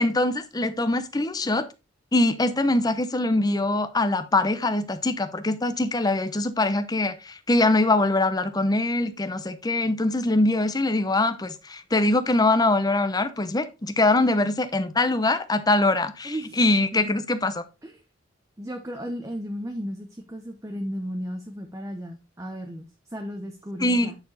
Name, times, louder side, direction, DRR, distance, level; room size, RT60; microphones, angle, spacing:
voice 1, 0.0-1.7 2.1-17.6 23.8-24.1, left 2 dB, 20° left, 0.8 m, -23 dB
voice 2, 16.2-16.6 16.9-17.1 17.8-18.0 18.6-24.2, equal, 15° right, 0.9 m, -35 dB
9.6 x 4.5 x 4.0 m
head